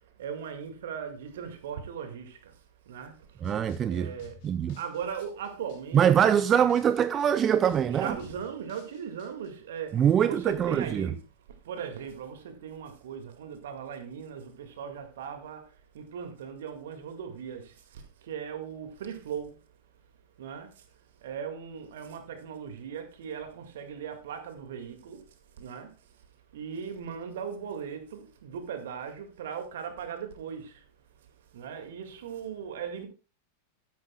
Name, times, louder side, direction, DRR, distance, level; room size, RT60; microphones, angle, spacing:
voice 1, 0.2-2.6 2.9-3.4 3.9-4.4 4.8-6.3 7.9-19.6 20.4-20.9 21.2-25.9 26.5-30.8 31.5-33.1, right 7 dB, 60° right, 2.0 m, -39 dB
sound 1, 3.4-9.5, left 7 dB, 45° left, 2.8 m, -52 dB
voice 2, 3.4-4.1 4.4-4.8 5.9-8.2 9.9-11.1, right 9 dB, 25° right, 0.4 m, -23 dB
13.5 x 10.0 x 2.3 m
figure-of-eight pair, 90°, 0 cm